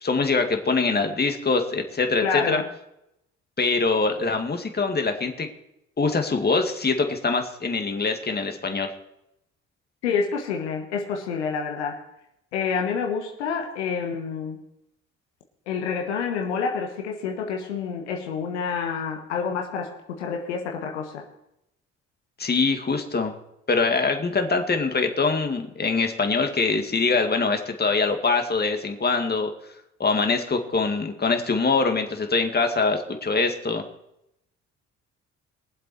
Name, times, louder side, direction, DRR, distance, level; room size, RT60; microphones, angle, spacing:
voice 1, 0.0-2.6 3.6-5.5 6.0-8.9 22.4-23.4 23.7-29.5 30.0-33.8, left 4 dB, 30° left, 5 dB, 2.2 m, -23 dB
voice 2, 2.2-2.6 10.0-12.0 12.5-14.6 15.7-21.2, left 6 dB, 85° left, 2 dB, 1.4 m, -28 dB
21.0 x 7.6 x 4.7 m, 0.82 s
hypercardioid pair, 50°, 34 cm